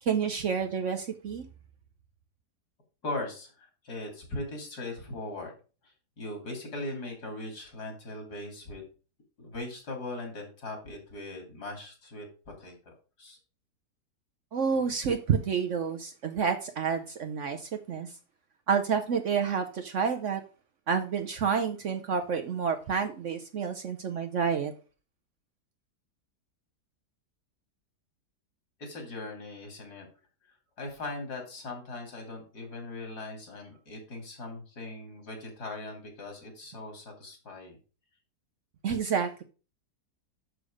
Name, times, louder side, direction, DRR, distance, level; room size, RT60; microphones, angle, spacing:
voice 1, 0.0-1.5 14.5-18.1 18.7-20.4 20.9-24.7 38.8-39.4, right 6 dB, 60° right, 0.9 m, -29 dB
voice 2, 3.0-5.5 5.8-8.8 9.4-12.3 12.6-12.9 13.2-13.4 28.8-30.1 30.8-37.8, left 2 dB, 70° left, 3.2 m, -39 dB
6.6 x 6.3 x 4.9 m
omnidirectional pair, 1.8 m